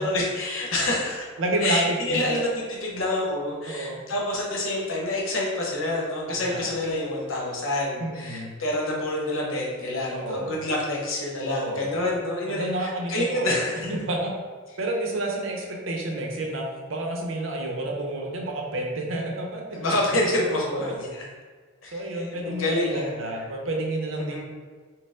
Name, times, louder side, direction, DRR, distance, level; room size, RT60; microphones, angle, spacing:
voice 1, 0.0-1.3 1.6-13.9 19.7-21.2 21.8-23.4 24.1-24.4, left 1 dB, 70° left, -3 dB, 0.8 m, -27 dB
voice 2, 1.4-2.2 3.7-4.0 6.3-6.7 8.0-8.5 10.1-10.6 11.4-12.0 12.5-13.6 13.8-14.3 14.8-19.8 20.7-20.8 21.9-24.4, right 1 dB, 70° right, 0 dB, 0.6 m, -30 dB
4.2 x 2.0 x 3.6 m, 1.5 s
head